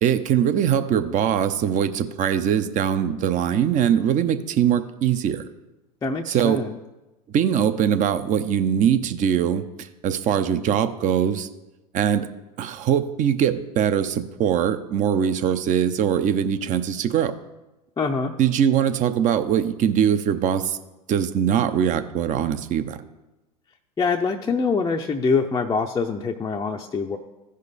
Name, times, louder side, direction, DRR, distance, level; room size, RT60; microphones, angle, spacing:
voice 1, 0.0-5.4 6.3-6.6 7.3-11.5 11.9-12.3 12.6-17.3 18.4-20.8 21.1-23.0, right 9 dB, 35° right, 10 dB, 0.8 m, -22 dB
voice 2, 6.0-6.7 18.0-18.3 24.0-27.2, left 4 dB, 15° left, 1 dB, 0.6 m, -24 dB
15.0 x 5.3 x 4.1 m, 1.1 s
hypercardioid pair, 95°, 21 cm